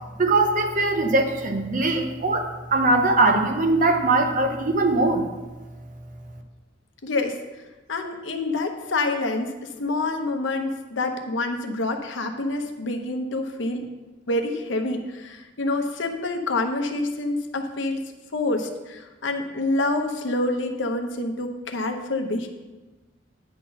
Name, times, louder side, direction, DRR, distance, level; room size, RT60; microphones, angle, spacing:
voice 1, 0.2-5.3, right 2 dB, 45° right, 5 dB, 0.8 m, -21 dB
voice 2, 7.0-7.4 7.9-13.8 14.3-18.0 18.3-22.5, left 2 dB, 80° left, 5 dB, 0.9 m, -27 dB
9.7 x 4.0 x 5.8 m, 1.2 s
head